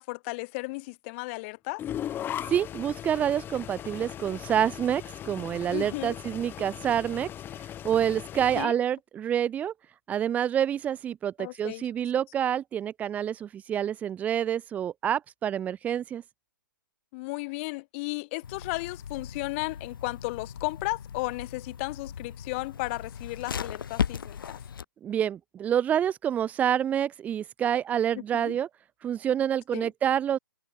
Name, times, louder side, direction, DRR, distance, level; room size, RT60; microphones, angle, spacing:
voice 1, 0.0-1.8 5.7-6.1 8.5-8.7 11.4-11.8 17.1-24.6 28.1-28.6 29.7-29.9, left 26 dB, 35° left, 1.6 m, -34 dB
sound 1, 1.8-8.6, left 11 dB, 20° left, 2.2 m, -38 dB
voice 2, 2.5-7.3 7.8-9.7 10.1-16.2 25.0-28.7 29.0-30.4, right 9 dB, 15° right, 0.5 m, -27 dB
sound 2, 18.4-24.8, left 7 dB, 75° left, 1.9 m, -37 dB
hypercardioid pair, 140°, 11 cm